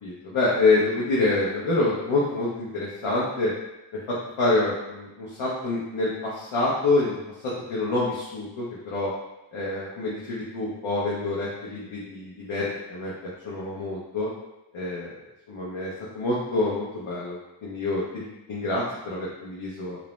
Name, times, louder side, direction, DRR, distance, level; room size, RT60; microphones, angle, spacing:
voice 1, 0.0-3.5 3.9-7.2 7.4-9.1 9.5-13.1 13.4-14.3 14.7-15.1 15.5-20.0, left 2 dB, 80° left, -6 dB, 0.7 m, -27 dB
2.5 x 2.0 x 3.0 m, 0.94 s
cardioid pair, 60°, 47 cm